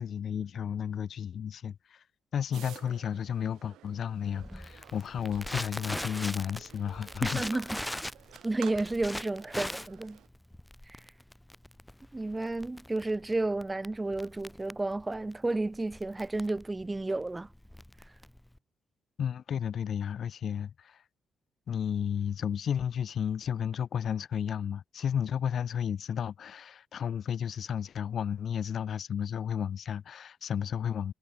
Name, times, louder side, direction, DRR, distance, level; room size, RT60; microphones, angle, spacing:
voice 1, 0.0-2.0 2.3-7.7 19.2-21.0 21.7-31.1, left 8 dB, 60° left, 0.9 m, -33 dB
sound 1, 2.5-10.3, right 13 dB, 85° right, 2.7 m, -52 dB
Crackle, 4.4-18.6, left 1 dB, 5° left, 2.0 m, -41 dB
voice 2, 7.2-7.6 8.4-10.2 10.9-11.0 12.1-17.5, right 2 dB, 15° right, 1.3 m, -32 dB
cardioid pair, 90°, 0 cm